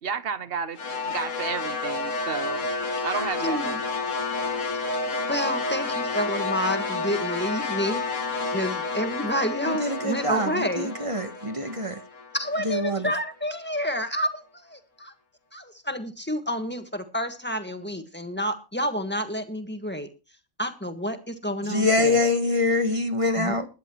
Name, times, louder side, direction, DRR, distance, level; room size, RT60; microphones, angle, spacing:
voice 1, 0.0-2.7 3.0-3.8, right 6 dB, 50° right, 1.1 m, -32 dB
sound 1, 0.8-13.0, left 3 dB, 75° left, 2.4 m, -30 dB
voice 2, 3.4-3.8 5.3-8.0 8.5-10.9 12.3-15.1 15.5-20.1 20.6-22.2 23.4-23.6, equal, 10° left, 1.6 m, -29 dB
voice 3, 9.7-12.0 12.6-13.1 21.7-23.7, left 2 dB, 25° right, 1.2 m, -25 dB
21.5 x 10.5 x 3.1 m
omnidirectional pair, 1.3 m